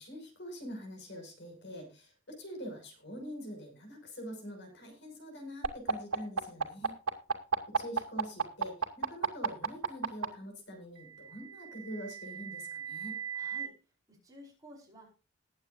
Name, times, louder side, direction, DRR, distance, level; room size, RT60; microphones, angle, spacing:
voice 1, 0.0-6.9 7.7-13.2, equal, 50° left, 3 dB, 5.9 m, -44 dB
sound 1, 5.6-10.3 11.4-13.7, right 5 dB, 80° right, 2.5 m, -32 dB
voice 2, 13.3-13.7 14.1-15.1, left 1 dB, 15° right, -1 dB, 5.0 m, -53 dB
20.5 x 9.2 x 2.6 m, 0.31 s
head